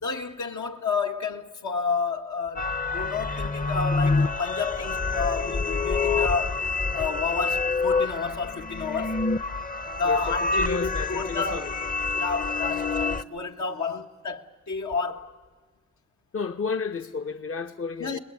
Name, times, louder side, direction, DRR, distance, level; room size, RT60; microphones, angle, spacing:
voice 1, 0.0-6.6 6.9-9.2 9.8-11.7 12.1-15.3 18.0-18.2, left 5 dB, 80° left, 1.6 m, -30 dB
sound 1, 2.6-13.2, left 4 dB, 30° left, 0.8 m, -27 dB
voice 2, 10.0-11.7 16.3-18.2, left 5 dB, 50° left, 0.9 m, -32 dB
30.0 x 20.5 x 9.6 m
cardioid pair, 55°, 29 cm